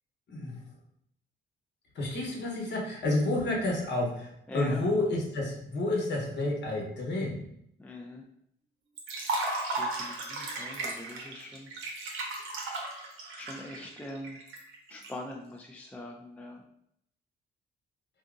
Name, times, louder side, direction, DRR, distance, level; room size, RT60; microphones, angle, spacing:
voice 1, 0.3-0.6 1.9-7.4, left 2 dB, 65° left, -1 dB, 1.1 m, -30 dB
voice 2, 4.5-4.8 7.8-8.3 9.8-11.7 13.4-14.4 14.9-16.6, left 1 dB, 5° left, 1 dB, 0.4 m, -42 dB
Liquid, 9.0-15.1, right 2 dB, 85° right, 0.8 m, -35 dB
3.5 x 2.6 x 2.5 m, 0.72 s
cardioid pair, 90°, 20 cm